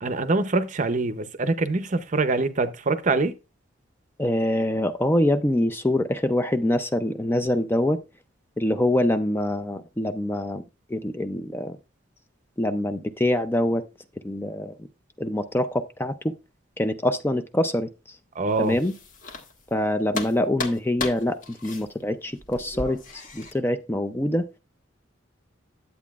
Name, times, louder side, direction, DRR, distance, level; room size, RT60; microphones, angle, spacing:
voice 1, 0.0-3.3 18.3-18.8, right 3 dB, 40° right, 0.6 m, -24 dB
voice 2, 4.2-8.0 8.6-10.6 10.9-11.8 12.6-13.9 14.2-14.9 15.2-16.3 16.8-18.2 18.6-18.9 19.7-24.5, left 1 dB, 10° left, 0.4 m, -25 dB
sound 1, 18.5-19.8 20.1-23.5, left 2 dB, 45° left, 1.4 m, -35 dB
10.5 x 8.2 x 2.4 m
head